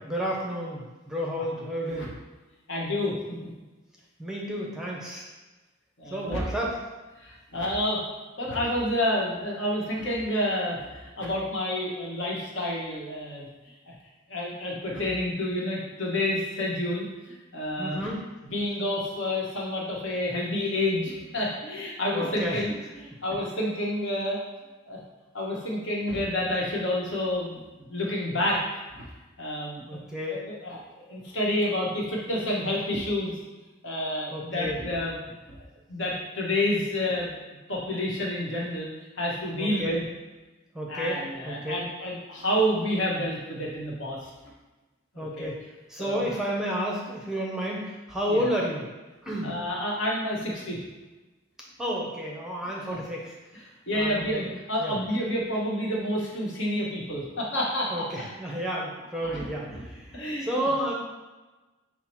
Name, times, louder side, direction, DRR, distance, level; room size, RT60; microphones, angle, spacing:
voice 1, 0.1-2.1 4.2-5.3 6.1-6.7 17.8-18.2 22.1-22.6 29.9-30.4 34.3-34.8 39.6-40.0 40.7-41.8 45.2-45.6 45.9-48.8 49.2-49.5 51.8-53.3 53.9-54.4 54.8-54.9 57.9-60.9, equal, 5° right, -3 dB, 0.6 m, -31 dB
voice 2, 2.7-3.5 6.0-6.4 7.2-8.0 8.4-13.5 13.9-14.0 14.3-18.1 18.5-24.4 24.9-25.0 25.3-28.6 28.9-29.1 29.4-29.8 30.3-33.3 33.8-35.2 35.5-37.3 37.7-38.9 39.2-40.0 40.9-44.3 45.1-45.5 46.0-46.4 48.3-48.4 49.4-50.8 52.9-53.0 53.9-57.9 59.3-59.8 60.1-60.7, left 1 dB, 65° left, -4 dB, 1.1 m, -29 dB
5.7 x 2.0 x 4.4 m, 1.2 s
head